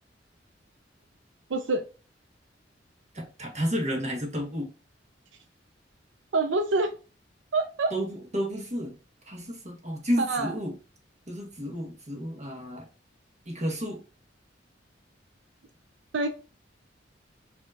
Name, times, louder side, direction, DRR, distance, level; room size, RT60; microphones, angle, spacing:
voice 1, 1.5-1.9 6.3-6.9 7.5-7.9 10.2-10.5 16.1-16.3, right 3 dB, 85° right, 0.5 m, -26 dB
voice 2, 3.1-4.7 7.9-8.9 9.2-10.7 11.3-12.9 13.4-14.0, equal, 40° right, 1.4 m, -31 dB
5.1 x 2.8 x 2.4 m
head